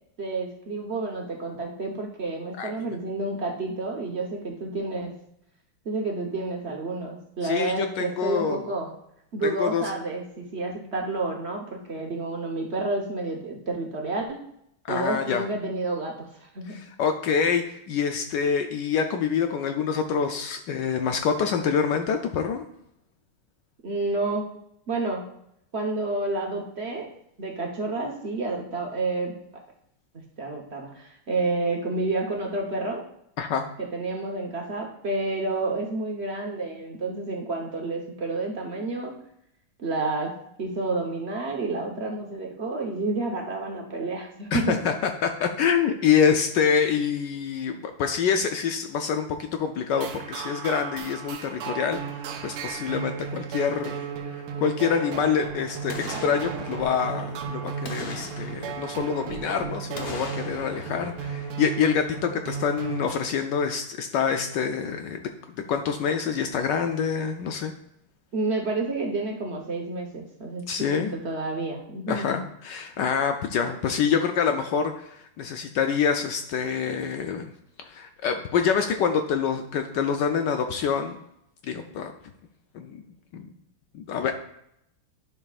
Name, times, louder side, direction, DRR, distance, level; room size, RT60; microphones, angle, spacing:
voice 1, 0.2-5.1 5.8-8.9 9.3-14.3 14.9-16.8 23.8-24.5 24.9-25.2 25.7-27.1 27.4-29.3 30.4-33.0 33.8-39.1 39.8-40.3 40.6-44.7 68.3-70.6 71.0-72.4, right 2 dB, 45° right, 1 dB, 0.9 m, -29 dB
voice 2, 7.4-8.6 9.4-9.8 14.9-15.4 16.7-22.6 33.4-33.6 44.5-65.3 65.7-67.7 70.7-71.2 72.1-77.5 77.8-81.2 81.6-82.1 82.7-83.0 83.3-83.5 83.9-84.4, left 7 dB, 75° left, 6 dB, 1.0 m, -26 dB
sound 1, 49.9-63.1, right 7 dB, 85° right, 1.7 m, -35 dB
Boom, 55.9-57.4 57.8-59.5 59.9-62.2 62.5-62.6, left 2 dB, 45° left, 0.8 m, -40 dB
10.5 x 5.7 x 2.4 m, 0.76 s
omnidirectional pair, 2.4 m